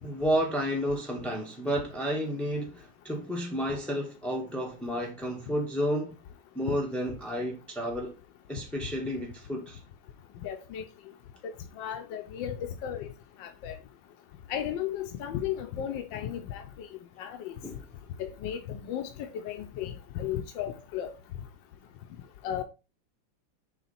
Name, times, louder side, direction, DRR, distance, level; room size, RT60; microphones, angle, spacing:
voice 1, 0.0-6.2 6.5-8.1 8.5-9.8 17.6-17.8, equal, ahead, 0.5 m, -31 dB
voice 2, 10.4-10.8 11.8-13.1 13.4-13.8 14.5-16.9 17.2-17.5 18.2-21.1 22.4-22.6, left 10 dB, 90° left, 1.4 m, -35 dB
7.0 x 3.3 x 4.2 m
omnidirectional pair, 2.0 m